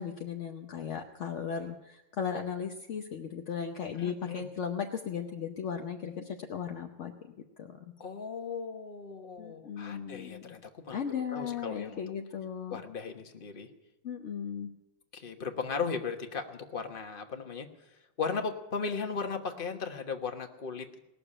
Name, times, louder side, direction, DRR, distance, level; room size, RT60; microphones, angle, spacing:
voice 1, 0.0-7.1 7.6-7.7 9.4-10.6 10.9-12.8 14.0-14.7, left 7 dB, 55° left, 4 dB, 0.9 m, -36 dB
voice 2, 3.9-4.5 8.0-11.0 11.3-12.0 12.7-13.7 15.1-17.7 18.2-21.0, left 5 dB, 30° left, 5 dB, 1.2 m, -36 dB
19.5 x 7.1 x 9.9 m, 0.97 s
omnidirectional pair, 2.1 m